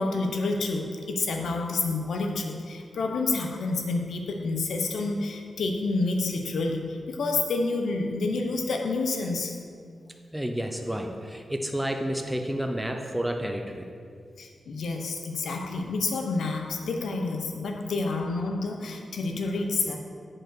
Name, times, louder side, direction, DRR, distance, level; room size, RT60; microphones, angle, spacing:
voice 1, 0.0-9.5 14.4-20.0, left 3 dB, 80° left, 3 dB, 0.9 m, -29 dB
voice 2, 10.3-13.9, equal, 5° right, 3 dB, 0.4 m, -30 dB
7.7 x 4.7 x 6.1 m, 2.2 s
wide cardioid pair, 170°, 0 cm